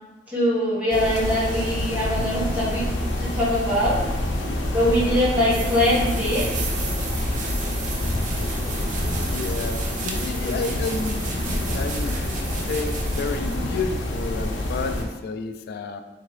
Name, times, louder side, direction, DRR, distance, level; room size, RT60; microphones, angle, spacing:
voice 1, 0.3-2.9 3.2-4.0 4.7-6.5, left 1 dB, 10° right, -9 dB, 1.1 m, -22 dB
sound 1, 0.9-15.0, left 1 dB, 85° left, 0.6 m, -27 dB
sound 2, 5.5-13.7, right 5 dB, 45° right, 0.4 m, -35 dB
voice 2, 9.2-11.3 11.7-12.3 12.7-16.0, left 4 dB, 55° left, 8 dB, 0.3 m, -30 dB
3.6 x 2.9 x 3.1 m, 1.2 s
head